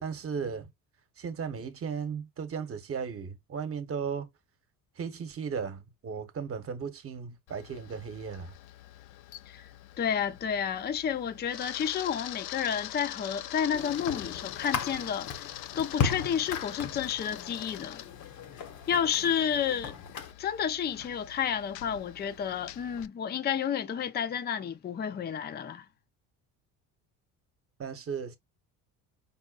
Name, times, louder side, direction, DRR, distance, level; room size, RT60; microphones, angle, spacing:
voice 1, 0.0-0.7 1.2-4.3 5.0-8.5 27.8-28.4, right 6 dB, 35° right, 1.0 m, -36 dB
Camera, 7.5-23.1, left 14 dB, 70° left, 0.5 m, -44 dB
voice 2, 10.0-18.0 18.9-20.0 20.4-25.9, left 8 dB, 25° left, 0.5 m, -31 dB
sound 1, 13.7-20.3, left 6 dB, 50° left, 0.9 m, -36 dB
5.5 x 2.1 x 2.4 m
cardioid pair, 100°, 37 cm